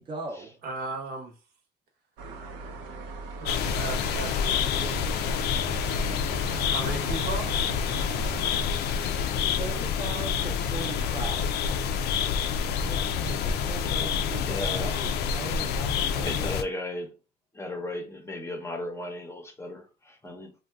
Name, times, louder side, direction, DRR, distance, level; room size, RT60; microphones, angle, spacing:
voice 1, 0.0-0.6 7.6-7.7 9.6-11.5 12.8-16.5, right 3 dB, 30° right, 0.6 m, -39 dB
voice 2, 0.6-1.3 3.4-5.1 6.7-7.5, right 3 dB, 65° right, 1.0 m, -36 dB
sound 1, 2.2-8.5, right 3 dB, 85° right, 0.7 m, -39 dB
sound 2, 3.5-16.6, left 7 dB, 75° left, 0.4 m, -28 dB
voice 3, 14.4-15.0 16.1-17.1 17.5-20.5, left 1 dB, 15° left, 0.7 m, -36 dB
2.6 x 2.2 x 3.4 m
cardioid pair, 110°, 17 cm